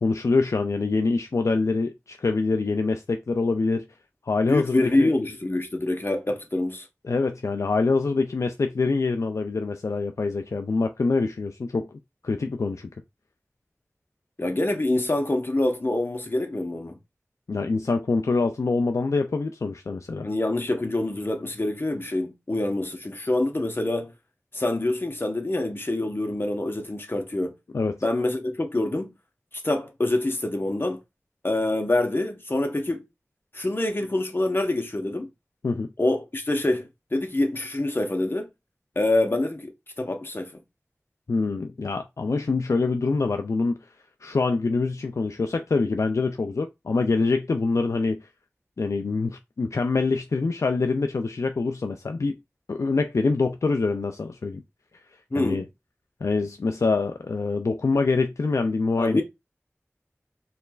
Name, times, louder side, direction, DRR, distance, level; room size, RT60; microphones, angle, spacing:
voice 1, 0.0-3.9 4.3-5.1 7.0-11.9 12.2-12.9 17.5-20.3 27.7-28.0 35.6-35.9 41.3-43.8 44.2-48.3 48.8-52.4 52.7-54.6 55.3-55.6 56.2-59.2, left 3 dB, 80° left, 0.3 m, -25 dB
voice 2, 4.4-6.9 14.4-17.0 20.2-24.1 24.5-27.5 28.0-29.1 29.6-31.0 31.4-33.0 33.5-35.3 36.0-38.5 38.9-39.7 40.0-40.6 55.3-55.6 59.0-59.2, left 2 dB, 45° left, 1.0 m, -26 dB
4.4 x 3.2 x 2.4 m
wide cardioid pair, 55°, 5 cm